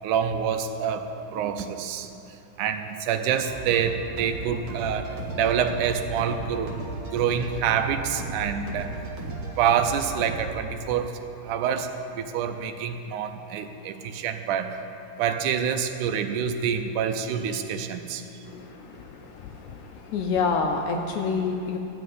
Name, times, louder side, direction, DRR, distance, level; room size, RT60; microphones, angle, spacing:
voice 1, 0.0-2.1 2.6-6.7 7.1-8.9 9.2-11.2 11.4-14.8 15.2-18.2, right 8 dB, 80° right, 7 dB, 2.0 m, -27 dB
sound 1, 3.4-10.5, right 2 dB, 55° right, 1.6 m, -35 dB
voice 2, 18.4-21.8, left 4 dB, 75° left, 3 dB, 1.8 m, -28 dB
14.0 x 5.3 x 9.3 m, 2.9 s
omnidirectional pair, 3.8 m